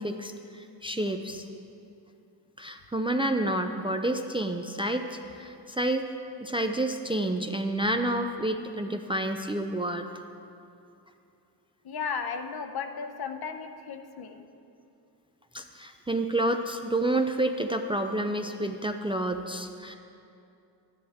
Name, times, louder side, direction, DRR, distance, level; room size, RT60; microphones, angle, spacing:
voice 1, 0.0-1.4 2.6-6.1 6.4-10.1 15.5-19.9, right 1 dB, 15° right, 5 dB, 0.4 m, -29 dB
voice 2, 11.8-14.4, left 6 dB, 60° left, 7 dB, 0.8 m, -35 dB
13.0 x 10.0 x 3.5 m, 2.7 s
wide cardioid pair, 105°, 43 cm